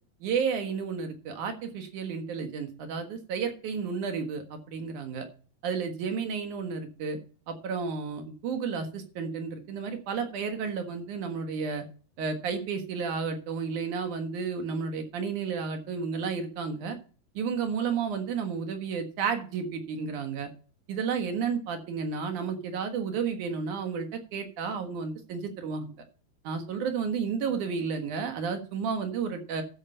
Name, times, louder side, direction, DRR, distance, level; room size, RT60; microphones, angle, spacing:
voice 1, 0.2-5.3 5.6-7.2 7.5-11.8 12.2-17.0 17.4-20.5 20.9-25.9 26.4-29.6, right 5 dB, 60° right, 6 dB, 2.6 m, -32 dB
13.5 x 5.7 x 5.5 m, 0.40 s
omnidirectional pair, 4.6 m